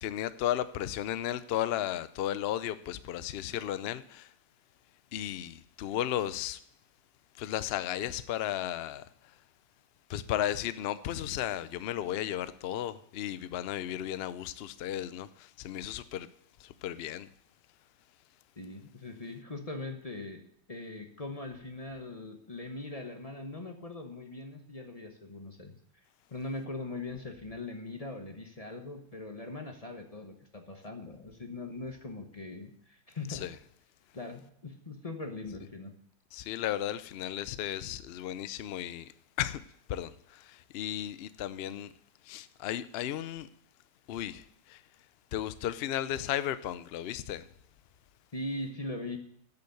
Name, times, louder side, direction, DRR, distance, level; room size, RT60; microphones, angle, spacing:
voice 1, 0.0-4.3 5.1-6.6 7.4-9.0 10.1-16.3 16.6-17.3 33.3-33.5 36.3-39.1 39.4-39.6 39.9-41.9 42.2-43.5 44.1-44.8 45.3-47.4, left 11 dB, 75° left, 0.5 m, -34 dB
voice 2, 18.6-20.4 20.7-25.8 26.3-33.5 34.1-35.9 48.3-49.2, left 2 dB, 25° left, 0.9 m, -41 dB
8.3 x 7.0 x 7.9 m
omnidirectional pair, 1.7 m